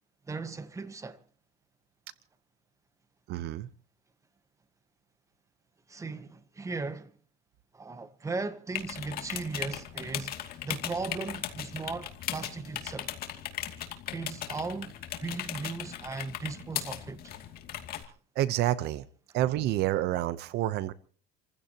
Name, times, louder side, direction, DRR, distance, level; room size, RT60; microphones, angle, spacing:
voice 1, 0.3-1.2 5.9-7.1 7.7-10.3 10.6-13.1 14.1-17.3, right 3 dB, 15° right, 1.5 m, -37 dB
voice 2, 3.3-3.7 18.4-19.0 19.3-20.9, right 14 dB, 65° right, 0.9 m, -28 dB
sound 1, 8.7-18.0, left 11 dB, 55° left, 2.6 m, -38 dB
30.0 x 15.5 x 3.0 m
cardioid pair, 120°, 18 cm